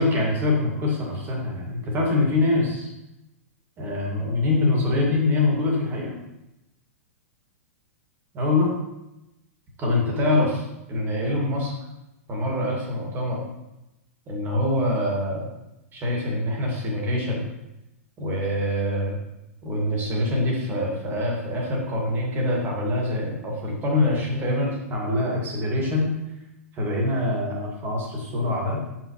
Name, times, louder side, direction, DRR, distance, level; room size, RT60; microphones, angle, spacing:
voice 1, 0.0-2.9 3.8-6.2 8.3-8.7 9.8-10.6 10.9-11.7 12.3-13.4 14.3-15.5 15.9-17.5 18.2-19.2 19.6-26.1 26.7-28.8, left 2 dB, 25° right, -2 dB, 2.4 m, -24 dB
7.1 x 6.1 x 3.3 m, 0.93 s
figure-of-eight pair, 105°, 8 cm